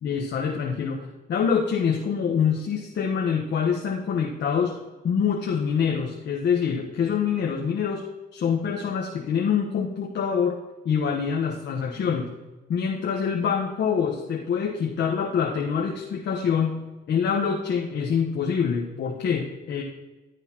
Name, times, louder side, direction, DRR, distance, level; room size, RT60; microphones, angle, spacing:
voice 1, 0.0-4.7 5.0-8.0 8.3-10.6 10.8-12.3 12.7-16.8 17.1-19.8, left 7 dB, 65° left, -1 dB, 1.2 m, -25 dB
14.5 x 8.3 x 3.0 m, 1.2 s
cardioid pair, 90°, 20 cm